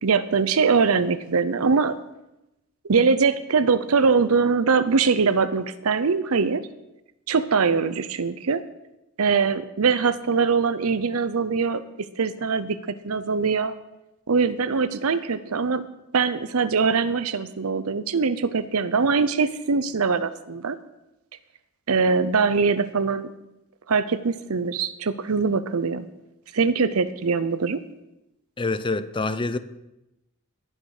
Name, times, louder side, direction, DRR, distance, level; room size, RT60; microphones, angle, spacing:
voice 1, 0.0-2.0 2.9-6.6 7.3-8.6 9.2-11.8 12.2-12.8 13.0-13.7 14.3-15.8 16.1-20.8 21.9-23.3 23.9-26.1 26.5-27.8, right 5 dB, 85° right, 0.7 m, -22 dB
voice 2, 28.6-29.6, left 3 dB, 25° left, 0.6 m, -26 dB
18.5 x 6.5 x 5.0 m
head